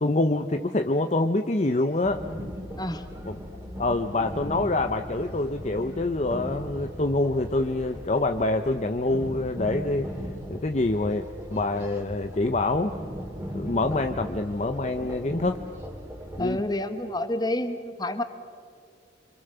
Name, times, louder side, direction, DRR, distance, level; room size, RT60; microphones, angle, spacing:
voice 1, 0.0-2.2 3.3-3.4 3.8-10.1 10.5-12.9 13.5-15.6 16.4-16.6, left 2 dB, 35° left, 6 dB, 0.7 m, -26 dB
sound 1, 2.0-16.4, equal, 10° right, 3.1 m, -38 dB
voice 2, 2.8-3.1 16.4-18.2, left 1 dB, 20° left, 9 dB, 1.3 m, -29 dB
26.5 x 25.5 x 6.9 m, 2.3 s
head